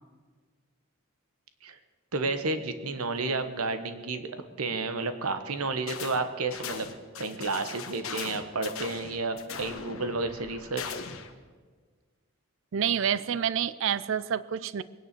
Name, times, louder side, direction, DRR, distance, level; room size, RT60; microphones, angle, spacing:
voice 1, 2.1-6.9 7.2-10.9, right 3 dB, 90° right, 9 dB, 1.1 m, -31 dB
sound 1, 5.9-6.2 6.5-11.3, left 6 dB, 75° left, 1.3 m, -39 dB
voice 2, 12.7-14.8, right 8 dB, 60° right, 17 dB, 0.4 m, -28 dB
22.0 x 9.7 x 6.7 m, 1.5 s
head